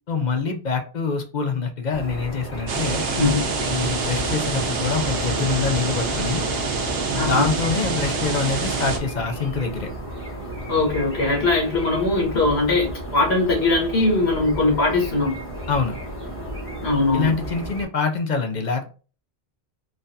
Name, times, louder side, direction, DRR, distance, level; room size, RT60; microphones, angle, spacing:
voice 1, 0.1-3.0 3.7-6.4 7.1-9.9 15.7-16.0 17.1-18.9, left 5 dB, 50° left, 5 dB, 0.6 m, -25 dB
sound 1, 1.9-17.8, right 1 dB, 15° left, 0.9 m, -34 dB
sound 2, 2.7-9.0, right 3 dB, 70° right, 1.0 m, -26 dB
voice 2, 7.1-7.5 10.7-15.4 16.8-17.3, left 3 dB, 80° left, -2 dB, 1.7 m, -21 dB
4.0 x 2.5 x 2.6 m, 0.36 s
omnidirectional pair, 1.1 m